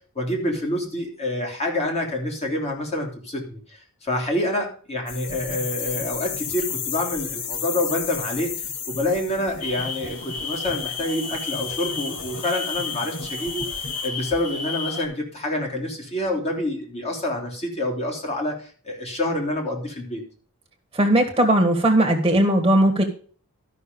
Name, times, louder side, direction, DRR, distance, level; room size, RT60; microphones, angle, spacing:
voice 1, 0.1-20.2, left 1 dB, 30° left, 0 dB, 3.2 m, -27 dB
sound 1, 5.1-14.1, left 6 dB, 55° left, 1.2 m, -33 dB
sound 2, 9.6-15.1, left 5 dB, 85° left, 2.3 m, -32 dB
voice 2, 20.9-23.0, right 1 dB, 20° right, 2 dB, 1.7 m, -18 dB
12.5 x 6.2 x 5.3 m, 0.43 s
head